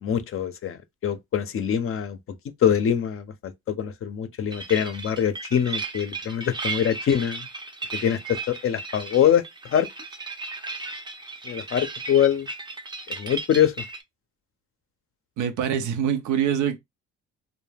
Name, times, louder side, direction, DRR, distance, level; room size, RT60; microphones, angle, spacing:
voice 1, 0.0-0.8 1.0-2.2 2.6-7.5 7.9-8.2 8.5-9.4 9.7-9.9 11.4-12.5 13.1-13.7, left 9 dB, 45° left, 0.5 m, -23 dB
sound 1, 4.5-14.0, right 3 dB, 15° right, 0.5 m, -35 dB
voice 2, 15.4-16.8, right 9 dB, 80° right, 0.6 m, -24 dB
2.2 x 2.2 x 3.2 m
cardioid pair, 90°, 30 cm